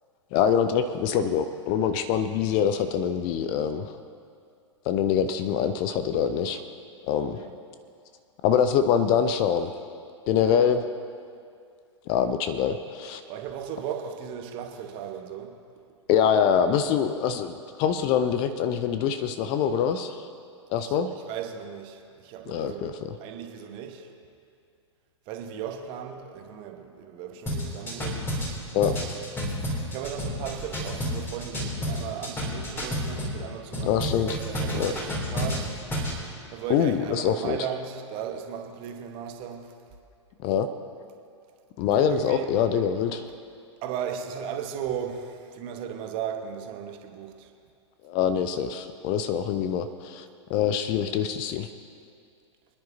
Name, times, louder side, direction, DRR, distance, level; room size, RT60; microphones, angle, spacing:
voice 1, 0.3-4.0 4.9-6.6 7.0-7.4 8.4-9.7 10.3-10.9 12.1-13.2 16.1-20.3 20.7-21.1 22.5-23.2 28.7-28.9 33.8-34.4 34.7-35.1 36.7-37.7 40.4-40.7 41.8-43.3 48.0-50.2 50.5-51.7, left 8 dB, 30° left, 10 dB, 0.6 m, -24 dB
voice 2, 13.3-15.5 21.3-22.0 22.2-22.8 23.2-24.0 25.3-28.5 29.9-35.6 36.5-39.6 42.1-42.5 43.8-45.2 45.6-47.3, right 8 dB, 35° right, 4 dB, 1.2 m, -36 dB
sound 1, 27.5-33.4 33.7-36.2, equal, 15° left, 2.7 m, -30 dB
25.0 x 10.5 x 2.7 m, 2.3 s
figure-of-eight pair, 100°, 16 cm